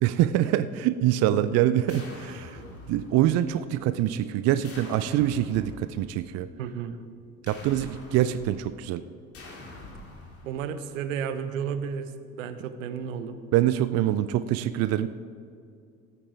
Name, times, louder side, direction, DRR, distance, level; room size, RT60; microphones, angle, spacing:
voice 1, 0.0-2.6 2.9-6.5 7.5-9.0 13.5-15.1, right 12 dB, 40° right, 13 dB, 0.5 m, -25 dB
sound 1, 1.5-3.5 4.6-6.2 7.5-8.9 9.3-10.9, left 2 dB, 35° left, 2.4 m, -45 dB
voice 2, 6.6-7.0 10.4-12.1 12.4-13.4, right 7 dB, 75° right, 11 dB, 0.8 m, -32 dB
16.5 x 8.7 x 3.7 m, 2.4 s
figure-of-eight pair, 65°, 40 cm